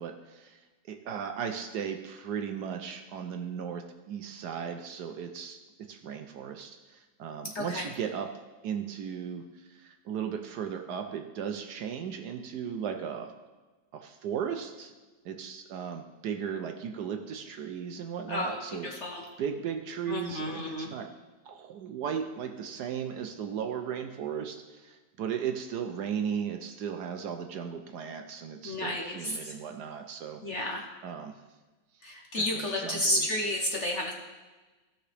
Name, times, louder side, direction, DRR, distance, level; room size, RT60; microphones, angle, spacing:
voice 1, 0.0-8.4 8.6-13.3 13.9-14.9 15.2-18.9 19.4-21.1 21.4-30.4 31.0-31.3 32.3-33.3, right 7 dB, 70° right, 5 dB, 1.1 m, -36 dB
voice 2, 7.4-7.9 18.3-19.2 20.1-20.9 28.6-29.6 30.4-30.9 32.0-34.1, left 1 dB, 50° left, 1 dB, 0.9 m, -32 dB
16.0 x 6.0 x 3.4 m, 1.2 s
omnidirectional pair, 2.0 m